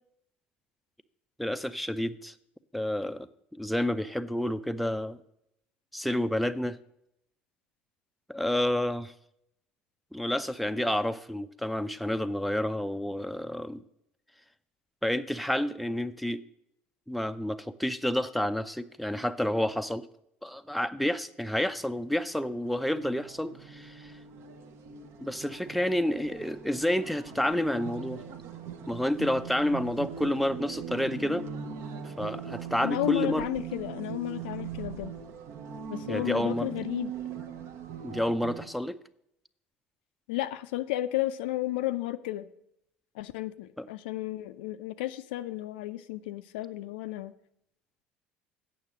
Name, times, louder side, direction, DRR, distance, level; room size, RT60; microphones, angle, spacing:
voice 1, 1.4-2.3 2.7-3.3 3.5-5.2 5.9-6.8 8.3-9.1 10.1-13.8 15.0-16.4 17.1-20.1 20.4-24.1 25.2-28.2 28.9-31.5 32.0-33.4 36.1-36.7 38.0-39.0 43.8-43.9, left 1 dB, ahead, 0.5 m, -29 dB
sound 1, 21.9-38.7, right 7 dB, 50° right, 0.8 m, -41 dB
voice 2, 32.8-35.1 35.9-37.1 40.3-42.5 43.2-47.3, left 15 dB, 65° left, 0.4 m, -33 dB
8.8 x 6.2 x 6.3 m
figure-of-eight pair, 60°, 6 cm